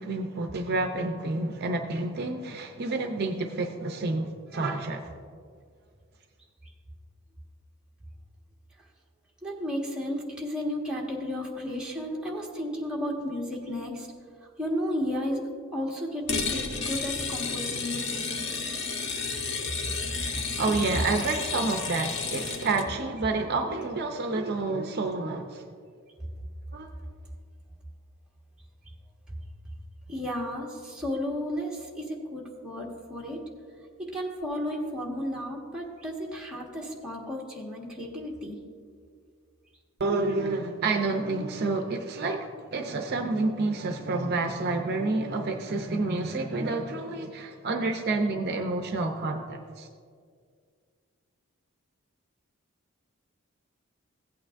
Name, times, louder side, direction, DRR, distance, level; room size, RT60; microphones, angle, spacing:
voice 1, 0.0-5.1 20.6-25.6 26.7-26.9 40.0-49.9, right 3 dB, 50° right, 5 dB, 0.5 m, -29 dB
voice 2, 9.4-14.1 14.4-15.4 15.7-18.3 30.1-33.4 34.0-38.6, equal, 5° right, -4 dB, 1.5 m, -33 dB
sound 1, 16.3-22.9, left 4 dB, 55° left, 0.9 m, -32 dB
16.0 x 8.6 x 2.5 m, 2.1 s
head